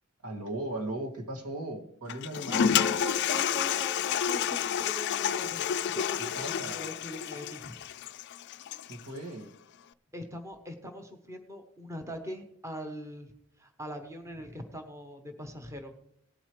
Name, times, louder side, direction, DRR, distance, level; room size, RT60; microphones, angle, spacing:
voice 1, 0.2-2.9 6.3-6.8 8.8-9.5, right 1 dB, 85° right, 1 dB, 2.1 m, -37 dB
Toilet flush, 2.1-9.0, left 8 dB, 50° left, 0.3 m, -30 dB
voice 2, 2.5-7.8 10.1-13.3 13.6-15.9, equal, 15° right, 5 dB, 1.0 m, -41 dB
18.5 x 8.0 x 3.2 m, 0.71 s
head